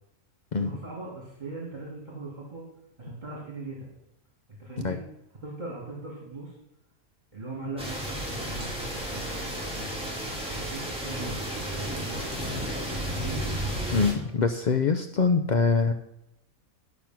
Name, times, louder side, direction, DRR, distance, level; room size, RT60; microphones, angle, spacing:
voice 1, 0.5-2.6 3.0-3.9 4.5-5.0 5.4-6.6 7.3-9.9 10.5-12.4 13.1-13.5, right 2 dB, 30° right, -3 dB, 2.6 m, -40 dB
sound 1, 7.8-14.1, right 1 dB, 5° right, 2.4 m, -32 dB
voice 2, 13.9-15.9, left 4 dB, 70° left, 8 dB, 0.4 m, -24 dB
10.5 x 6.3 x 5.9 m, 0.87 s
omnidirectional pair, 1.5 m